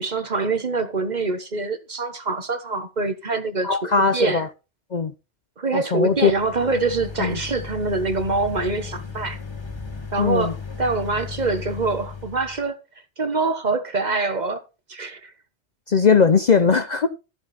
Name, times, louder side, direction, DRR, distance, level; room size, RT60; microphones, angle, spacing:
voice 1, 0.0-4.5 5.6-9.4 10.1-12.8 13.2-14.6 14.9-15.3, right 3 dB, 40° right, 1.2 m, -25 dB
voice 2, 3.6-4.5 4.9-5.1 5.7-6.3 7.2-7.4 10.2-10.5 15.9-17.1, left 5 dB, 45° left, 0.7 m, -19 dB
sound 1, 6.0-12.6, left 5 dB, 25° left, 1.9 m, -36 dB
13.0 x 7.5 x 4.2 m
omnidirectional pair, 1.2 m